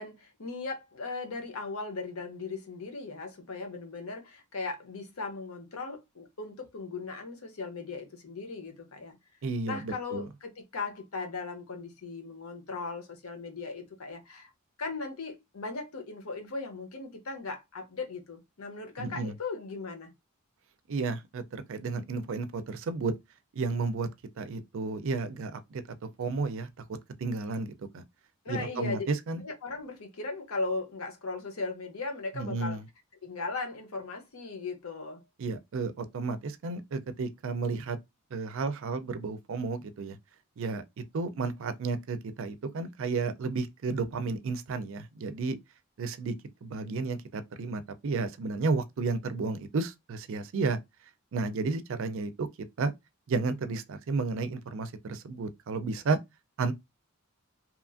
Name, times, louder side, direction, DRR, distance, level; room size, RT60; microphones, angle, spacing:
voice 1, 0.0-9.1 9.6-14.5 14.8-20.1 28.4-29.1 29.4-32.8 33.2-35.2, left 3 dB, 75° left, 0.8 m, -38 dB
voice 2, 9.4-10.3 19.0-19.3 20.9-23.1 23.5-24.1 24.4-25.8 26.2-28.0 28.5-29.4 32.4-32.8 35.4-38.0 38.3-40.2 40.6-40.8 41.1-45.6 46.0-46.4 46.6-50.8 51.3-52.5 52.8-52.9 53.3-56.2 56.6-56.7, right 4 dB, 60° right, 0.4 m, -32 dB
2.9 x 2.4 x 2.4 m
head